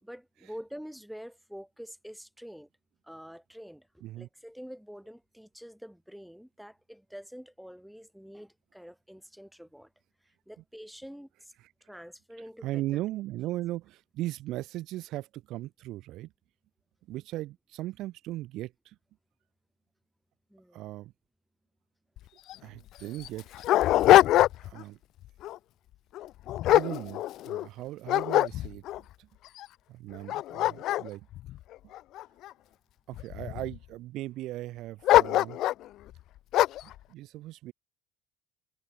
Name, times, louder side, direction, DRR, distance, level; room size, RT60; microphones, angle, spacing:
voice 1, 0.1-2.7 3.0-9.9 10.2-11.5 11.8-13.0 20.5-20.8, equal, ahead, 1.6 m, -46 dB
voice 2, 12.6-16.3 17.1-19.0 20.7-21.1 22.6-23.6 24.6-25.0 26.7-28.8 29.2-29.3 29.9-31.3 33.1-35.6 36.8-37.7, right 16 dB, 60° right, 0.7 m, -38 dB
Dog, 22.2-22.3 22.5-22.6 23.2-24.8 25.2-25.6 26.1-27.6 28.1-29.0 29.6-29.7 30.1-32.5 33.1-33.8 35.0-35.9 36.5-36.9, left 14 dB, 55° left, 0.4 m, -23 dB
cardioid pair, 130°, 0 cm